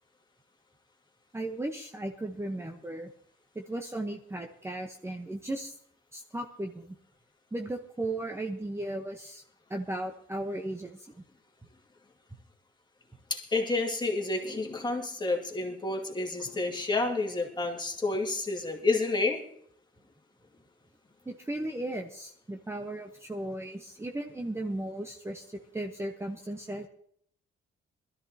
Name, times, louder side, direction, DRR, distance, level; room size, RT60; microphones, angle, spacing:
voice 1, 1.3-3.1 3.5-5.7 6.1-6.9 7.5-9.4 9.7-11.1 16.4-16.5 21.3-26.9, right 1 dB, 15° right, 3 dB, 1.0 m, -36 dB
voice 2, 13.3-19.5, left 3 dB, 20° left, 1 dB, 2.3 m, -30 dB
21.0 x 13.5 x 2.9 m, 0.66 s
cardioid pair, 90°, 20 cm